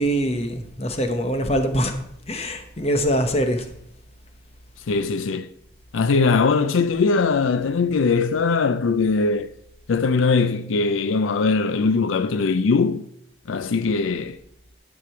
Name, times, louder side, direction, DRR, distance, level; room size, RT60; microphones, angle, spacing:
voice 1, 0.0-1.9 2.3-3.6, equal, 30° left, 0.9 m, -23 dB
voice 2, 4.9-5.5 5.9-9.5 9.9-13.0 13.5-14.4, left 4 dB, 85° left, 0.5 m, -21 dB
11.5 x 5.4 x 4.4 m
head